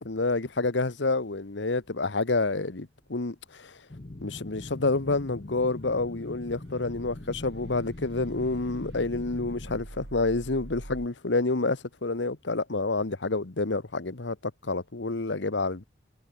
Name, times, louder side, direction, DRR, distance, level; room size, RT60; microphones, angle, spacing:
voice 1, 0.0-3.8 4.2-14.4 14.6-15.8, left 3 dB, 85° left, 1.2 m, -28 dB
sound 1, 3.9-9.8, left 1 dB, 40° left, 0.8 m, -42 dB
sound 2, 5.8-11.1, right 1 dB, 70° right, 1.8 m, -45 dB
head